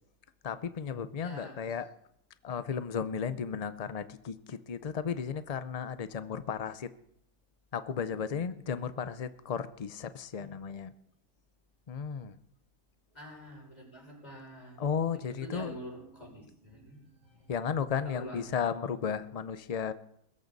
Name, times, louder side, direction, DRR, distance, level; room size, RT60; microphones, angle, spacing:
voice 1, 0.4-1.9 2.4-6.9 7.7-10.9 11.9-12.4 14.8-15.8 17.5-19.9, left 7 dB, 90° left, 13 dB, 0.3 m, -34 dB
voice 2, 1.2-1.7 10.4-10.5 13.1-14.8 15.1-17.5 18.0-18.4, equal, 25° left, -3 dB, 6.2 m, -46 dB
22.0 x 13.5 x 4.1 m, 0.77 s
omnidirectional pair, 1.6 m